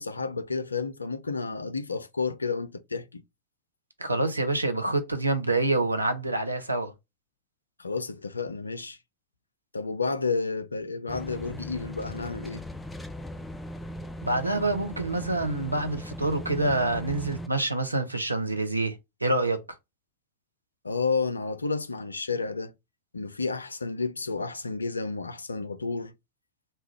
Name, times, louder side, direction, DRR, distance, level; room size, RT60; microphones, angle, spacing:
voice 1, 0.0-3.2 7.8-9.0 9.7-12.6 20.8-22.7 23.1-26.1, left 4 dB, 80° left, 0.4 m, -31 dB
voice 2, 4.0-6.9 14.2-19.0 19.2-19.6, right 2 dB, 85° right, 0.6 m, -26 dB
sound 1, 11.1-17.5, equal, 10° left, 0.4 m, -39 dB
3.3 x 2.3 x 3.1 m
figure-of-eight pair, 90°, 0 cm